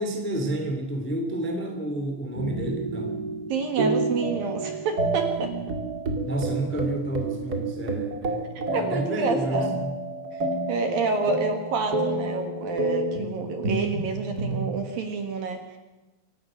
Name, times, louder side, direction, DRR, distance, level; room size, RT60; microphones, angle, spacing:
voice 1, 0.0-3.2 6.2-10.0, right 1 dB, 5° left, 4 dB, 1.4 m, -30 dB
sound 1, 2.3-14.7, right 2 dB, 40° right, 1.4 m, -29 dB
voice 2, 3.5-5.5 8.7-9.7 10.4-15.8, right 4 dB, 60° right, 6 dB, 2.8 m, -29 dB
25.5 x 11.5 x 9.1 m, 1.1 s
omnidirectional pair, 5.5 m